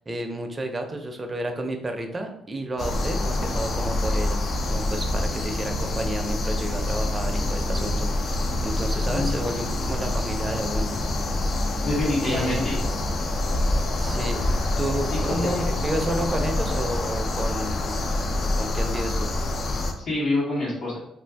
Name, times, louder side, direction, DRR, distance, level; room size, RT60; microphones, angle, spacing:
voice 1, 0.1-4.4 4.6-10.9 12.2-12.7 14.0-14.4 14.8-18.0 18.4-19.3, right 1 dB, 25° right, 4 dB, 0.5 m, -31 dB
sound 1, 2.8-19.9, left 2 dB, 50° left, 0.4 m, -26 dB
voice 2, 9.1-9.8 11.8-12.8 15.3-15.7 20.0-21.0, left 2 dB, 70° left, -6 dB, 1.2 m, -27 dB
2.5 x 2.4 x 3.4 m, 0.78 s
cardioid pair, 90°, 0 cm